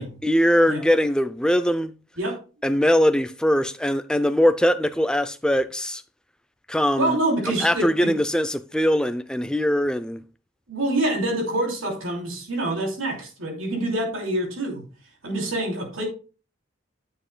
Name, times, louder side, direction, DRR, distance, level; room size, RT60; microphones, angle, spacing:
voice 1, 0.0-1.9 2.6-6.0 6.7-7.2 7.6-10.2, equal, 5° left, 0.4 m, -21 dB
voice 2, 7.0-8.1 10.7-14.8 15.2-16.1, right 1 dB, 70° right, 2.9 m, -26 dB
9.9 x 7.8 x 2.2 m
head